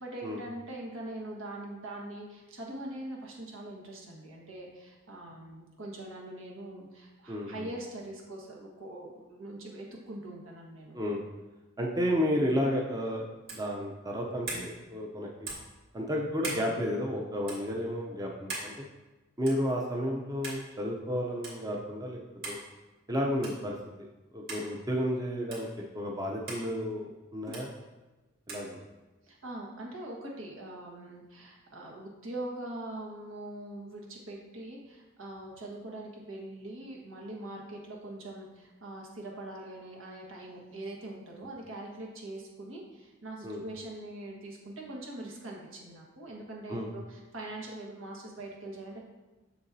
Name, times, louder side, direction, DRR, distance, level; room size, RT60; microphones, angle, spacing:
voice 1, 0.0-10.9 29.3-49.0, right 1 dB, 85° right, -2 dB, 1.5 m, -42 dB
voice 2, 7.3-7.7 10.9-11.2 11.8-15.5 15.9-18.9 19.4-22.2 22.5-22.6 23.1-23.8 24.3-25.7 25.9-27.7 28.5-28.8 43.4-43.6 46.7-46.9, equal, 20° right, -1 dB, 0.6 m, -32 dB
sound 1, 13.4-13.7 14.4-14.7 15.4-15.7 16.4-16.7 17.4-17.6 18.5-18.7 19.5-19.7 20.4-20.6 21.4-21.6 22.4-22.6 23.4-23.6 24.5-24.6 25.5-25.6 26.5-26.6 27.5-27.7 28.5-28.7, right 2 dB, 50° right, 2.1 m, -39 dB
6.9 x 6.7 x 2.7 m, 1.1 s
head